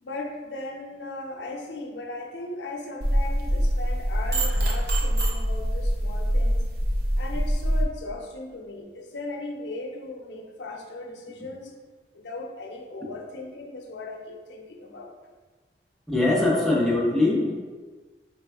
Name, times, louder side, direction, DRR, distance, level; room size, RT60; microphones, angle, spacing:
voice 1, 0.0-6.6 7.2-11.7 12.1-15.2, left 2 dB, 90° left, 2 dB, 0.6 m, -37 dB
sound 1, 3.0-7.8, equal, 60° right, 0.5 m, -24 dB
voice 2, 16.1-17.5, left 2 dB, ahead, -5 dB, 0.6 m, -22 dB
4.2 x 3.3 x 2.3 m, 1.3 s
head